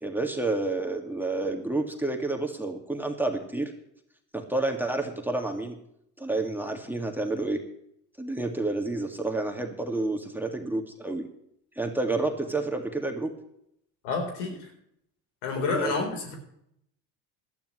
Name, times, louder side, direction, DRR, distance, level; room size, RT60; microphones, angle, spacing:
voice 1, 0.0-3.7 4.3-5.8 6.2-7.6 8.2-11.3 11.8-13.3 15.7-16.0, right 2 dB, 5° right, 3 dB, 2.1 m, -29 dB
voice 2, 14.0-14.7 15.4-16.3, left 4 dB, 85° left, 3 dB, 4.1 m, -29 dB
17.5 x 12.0 x 3.2 m, 0.74 s
supercardioid pair, 90°, 38 cm